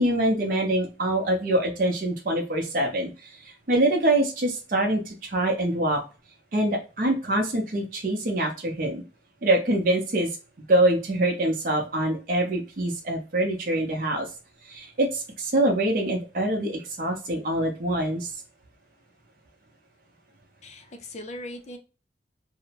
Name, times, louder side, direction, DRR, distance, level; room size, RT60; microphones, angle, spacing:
voice 1, 0.0-3.1 3.7-6.0 6.5-9.0 9.4-10.3 10.7-14.3 14.7-18.3, right 1 dB, 50° right, 0 dB, 0.6 m, -24 dB
voice 2, 20.6-21.8, left 1 dB, 40° left, 6 dB, 0.5 m, -39 dB
2.7 x 2.0 x 2.7 m, 0.32 s
head